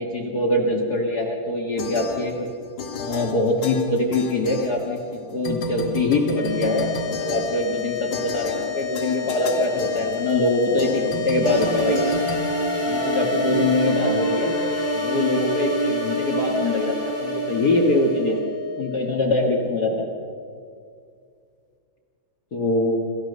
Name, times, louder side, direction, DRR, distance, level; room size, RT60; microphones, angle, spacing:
voice 1, 0.0-2.5 3.0-12.0 12.8-14.5 14.9-18.4 18.8-20.1 22.5-23.1, left 2 dB, 75° left, 0 dB, 0.9 m, -23 dB
sound 1, 1.8-2.5 2.8-5.1 5.4-13.3, left 1 dB, 60° left, 1.2 m, -34 dB
sound 2, 6.3-20.7, left 8 dB, 40° left, 1.9 m, -31 dB
sound 3, 11.4-18.3, right 2 dB, 80° right, 8.4 m, -26 dB
27.5 x 14.5 x 6.7 m, 2.3 s
omnidirectional pair, 4.7 m